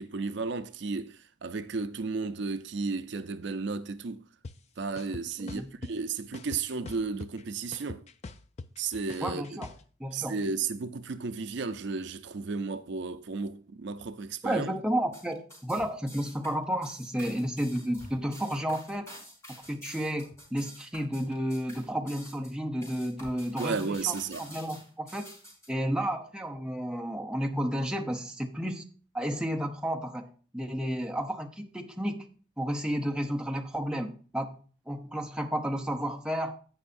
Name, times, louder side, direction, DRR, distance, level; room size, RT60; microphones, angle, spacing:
voice 1, 0.0-4.3 4.8-8.0 8.8-9.5 10.1-14.7 23.6-24.4, right 4 dB, 60° right, 0.5 m, -33 dB
sound 1, 4.4-4.5 5.0-5.9 6.3-7.4 7.7-9.8, left 3 dB, 35° left, 0.4 m, -42 dB
voice 2, 5.4-5.7 9.2-9.7 10.0-10.4 14.4-19.1 19.7-25.3 25.7-28.8 29.1-30.3 30.5-32.3 32.6-34.6 34.9-36.6, equal, 5° right, 0.7 m, -32 dB
sound 2, 15.0-25.7, equal, 15° left, 4.4 m, -49 dB
16.5 x 5.5 x 2.6 m
head